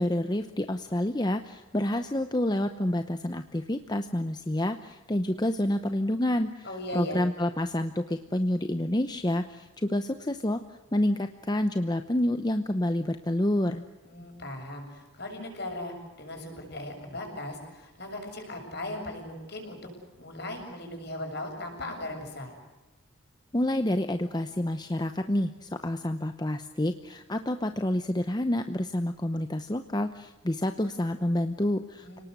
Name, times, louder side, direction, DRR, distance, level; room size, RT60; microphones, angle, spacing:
voice 1, 0.0-6.7 6.9-10.6 10.9-13.8 23.5-32.2, left 1 dB, 20° left, 8 dB, 0.8 m, -28 dB
voice 2, 6.6-7.2 14.0-22.5 32.0-32.2, left 1 dB, 50° left, 3 dB, 7.2 m, -38 dB
29.5 x 19.0 x 8.1 m, 1.1 s
head